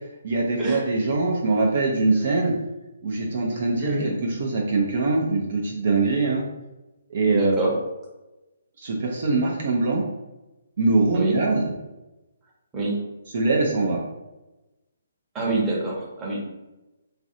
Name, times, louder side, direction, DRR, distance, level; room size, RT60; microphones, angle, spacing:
voice 1, 0.2-2.6 3.0-6.5 7.1-7.5 8.8-10.0 10.8-11.7 13.3-14.0, right 3 dB, 55° right, -1 dB, 0.5 m, -23 dB
voice 2, 3.8-4.1 7.3-7.7 11.1-11.4 12.7-13.0 15.3-16.4, right 2 dB, 15° right, -5 dB, 0.9 m, -25 dB
3.2 x 2.5 x 2.6 m, 1.0 s
figure-of-eight pair, 140°, 0 cm